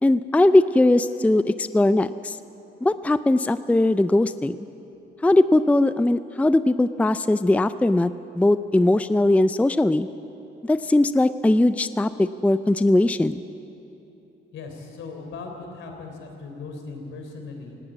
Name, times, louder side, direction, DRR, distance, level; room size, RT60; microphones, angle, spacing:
voice 1, 0.0-2.4 2.8-4.6 5.2-10.1 10.6-13.4, left 2 dB, 5° left, 13 dB, 0.5 m, -20 dB
voice 2, 14.5-17.7, left 4 dB, 75° left, 3 dB, 3.8 m, -38 dB
18.5 x 18.0 x 8.5 m, 2.9 s
cardioid pair, 90°, 20 cm